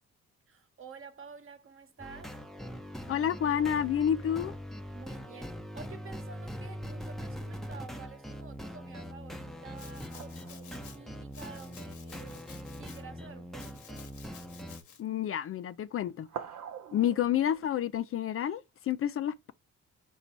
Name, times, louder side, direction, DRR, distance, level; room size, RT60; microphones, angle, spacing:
voice 1, 0.5-2.4 4.9-12.5 12.8-14.1, right 5 dB, 45° right, 1.1 m, -50 dB
sound 1, 2.0-14.8, equal, ahead, 0.7 m, -42 dB
voice 2, 3.1-4.5 15.0-16.3 16.9-19.5, left 10 dB, 50° left, 0.4 m, -29 dB
Domestic sounds home sounds, 9.8-11.0 11.3-13.0 13.6-15.0, left 7 dB, 75° left, 1.2 m, -53 dB
sound 2, 10.1-12.4 13.3-13.4 13.7-14.4 15.3-15.7 16.1-17.9, right 8 dB, 65° right, 0.7 m, -47 dB
4.1 x 2.7 x 4.5 m
cardioid pair, 90°, 30 cm